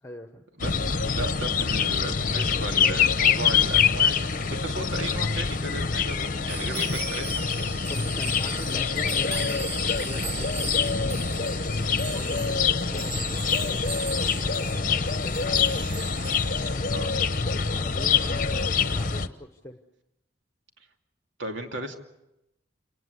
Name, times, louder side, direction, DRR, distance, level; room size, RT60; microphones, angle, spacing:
voice 1, 0.0-0.4 7.9-10.8 12.1-15.8 16.7-16.9 17.4-19.8, left 1 dB, 15° left, 6 dB, 1.1 m, -42 dB
sound 1, 0.6-19.3, left 6 dB, 45° left, 0.9 m, -25 dB
voice 2, 0.6-7.4 11.8-12.0 16.9-17.1 21.4-21.9, right 2 dB, 80° right, 4 dB, 2.8 m, -36 dB
sound 2, 6.5-16.8, right 5 dB, 60° right, 2.4 m, -38 dB
28.5 x 19.5 x 8.1 m, 0.87 s
head